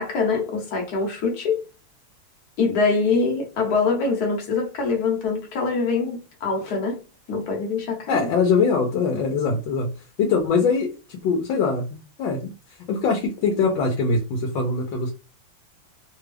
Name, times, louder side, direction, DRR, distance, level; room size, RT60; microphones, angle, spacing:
voice 1, 0.0-1.6 2.6-7.0 7.3-8.3, left 4 dB, 60° left, 1.4 m, -24 dB
voice 2, 8.1-9.9 10.2-11.8 12.2-12.5 12.9-15.1, left 4 dB, 85° left, 1.5 m, -22 dB
3.4 x 2.3 x 3.3 m
omnidirectional pair, 2.1 m